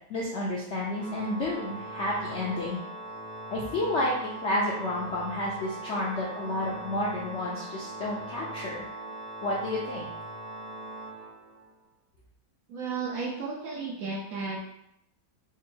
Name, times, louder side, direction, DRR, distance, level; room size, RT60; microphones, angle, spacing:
voice 1, 0.1-2.8 3.5-4.1 4.4-8.8 9.4-10.1, left 1 dB, 70° left, -5 dB, 0.6 m, -30 dB
Organ, 0.9-11.8, right 2 dB, 30° right, 0.7 m, -40 dB
voice 2, 12.7-14.6, right 4 dB, 70° right, -1 dB, 0.9 m, -33 dB
3.6 x 2.0 x 4.3 m, 0.76 s
omnidirectional pair, 1.9 m